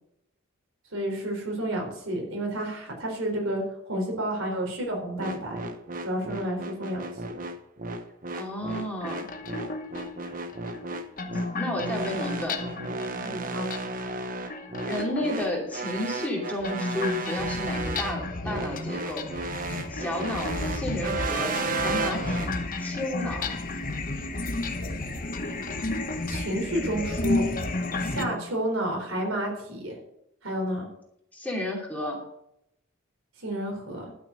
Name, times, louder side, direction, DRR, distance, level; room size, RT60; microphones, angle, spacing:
voice 1, 0.9-5.7 6.0-7.0 13.2-13.7 26.3-27.4 28.0-30.0 30.4-30.9 33.4-34.1, right 1 dB, 85° right, 1 dB, 4.1 m, -30 dB
sound 1, 5.2-22.5, right 3 dB, 40° right, 0.9 m, -33 dB
voice 2, 8.3-9.2 11.5-12.6 14.9-19.3 19.9-22.5 22.8-23.5 28.1-28.4 31.3-32.2, left 1 dB, 10° left, -2 dB, 2.8 m, -32 dB
sound 2, 8.9-28.3, left 2 dB, 40° left, 1.1 m, -32 dB
12.0 x 6.7 x 6.4 m, 0.79 s
head